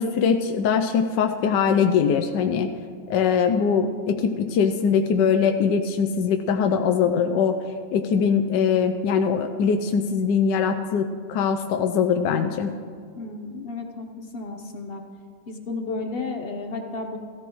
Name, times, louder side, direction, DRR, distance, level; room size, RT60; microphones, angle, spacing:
voice 1, 0.0-2.7 3.1-7.6 7.9-11.0 11.3-12.7, left 6 dB, 75° left, 6 dB, 1.2 m, -22 dB
voice 2, 13.1-15.0 15.5-17.2, left 3 dB, 50° left, 4 dB, 0.7 m, -33 dB
15.5 x 13.5 x 3.1 m, 2.1 s
omnidirectional pair, 2.0 m